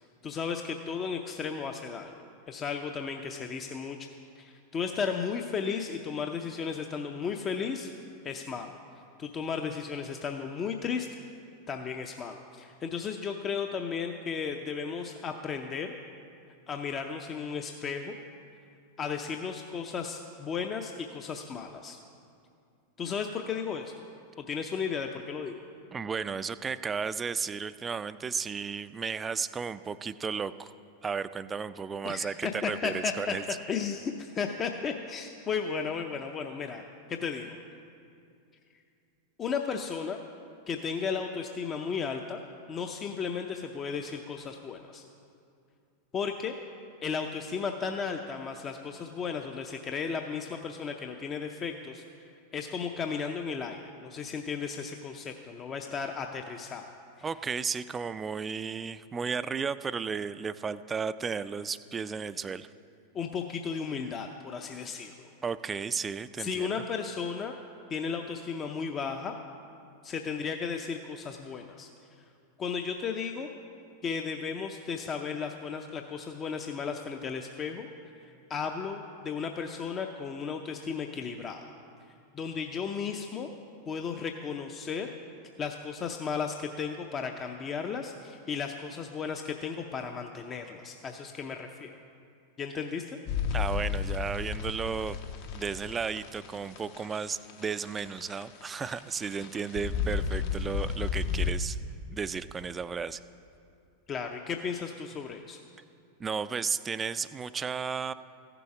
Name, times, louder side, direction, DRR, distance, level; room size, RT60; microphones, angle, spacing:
voice 1, 0.2-4.1 4.4-7.9 8.2-8.8 9.2-11.1 11.7-15.9 16.7-18.2 19.0-22.0 23.0-24.0 24.4-25.6 32.0-33.3 33.7-36.8 37.1-37.6 39.4-40.2 40.7-42.4 42.7-45.0 46.1-46.6 47.0-52.0 52.5-56.9 57.2-57.3 63.1-65.3 66.4-67.6 67.9-69.3 70.0-71.9 72.2-72.3 72.6-73.5 74.0-77.9 78.2-81.6 82.3-83.5 83.9-85.1 85.6-92.0 92.6-93.2 104.1-105.6, left 6 dB, 30° left, 4 dB, 0.5 m, -34 dB
voice 2, 25.9-30.7 31.0-33.4 57.2-62.7 65.4-66.7 93.5-95.2 95.5-101.8 102.1-103.2 106.2-108.1, right 5 dB, 20° right, 14 dB, 0.3 m, -34 dB
sound 1, 93.3-101.5, left 6 dB, 60° left, 0.9 m, -33 dB
14.5 x 6.9 x 4.8 m, 2.5 s
hypercardioid pair, 100°, 0 cm